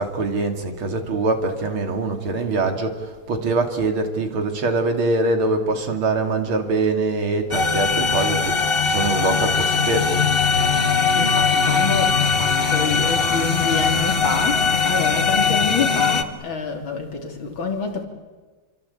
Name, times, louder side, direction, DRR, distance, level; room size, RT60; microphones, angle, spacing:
voice 1, 0.0-10.2, right 3 dB, 70° right, 3.4 m, -23 dB
sound 1, 7.5-16.2, left 5 dB, 30° left, 1.3 m, -20 dB
voice 2, 11.2-18.0, left 4 dB, 65° left, 3.9 m, -27 dB
29.0 x 23.5 x 8.6 m
omnidirectional pair, 2.4 m